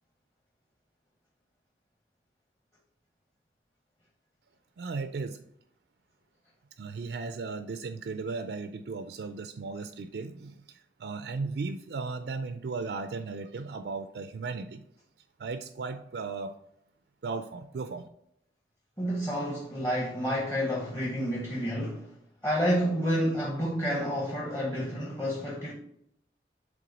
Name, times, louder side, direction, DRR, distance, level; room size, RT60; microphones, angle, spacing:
voice 1, 4.8-5.4 6.8-14.8 15.4-16.5 17.2-18.1, right 4 dB, 65° right, 0.4 m, -36 dB
voice 2, 19.0-22.1 22.4-25.7, equal, 15° left, 1.0 m, -29 dB
7.6 x 3.6 x 3.9 m
head